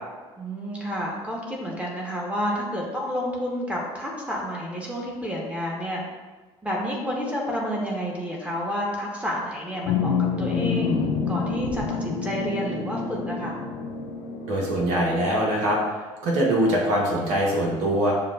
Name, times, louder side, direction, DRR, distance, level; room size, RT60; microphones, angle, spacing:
voice 1, 0.4-6.0 6.6-10.9 11.3-13.5, equal, 10° right, -3 dB, 1.3 m, -30 dB
sound 1, 9.9-15.6, left 5 dB, 60° left, 0.4 m, -28 dB
voice 2, 14.5-15.8 16.2-18.1, right 1 dB, 65° right, -3 dB, 1.0 m, -22 dB
6.8 x 2.3 x 2.4 m, 1.3 s
figure-of-eight pair, 55°, 15 cm